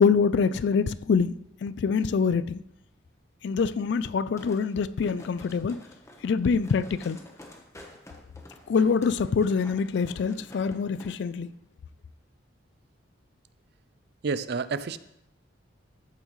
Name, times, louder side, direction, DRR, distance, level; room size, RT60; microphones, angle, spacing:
voice 1, 0.0-1.3 1.6-2.6 3.4-5.8 6.2-7.2 8.7-11.5, left 5 dB, 60° left, 0.3 m, -25 dB
sound 1, 4.4-11.1 11.5-11.6, left 1 dB, 15° left, 1.0 m, -50 dB
voice 2, 14.2-15.0, right 4 dB, 55° right, 0.4 m, -29 dB
13.5 x 7.2 x 3.1 m
head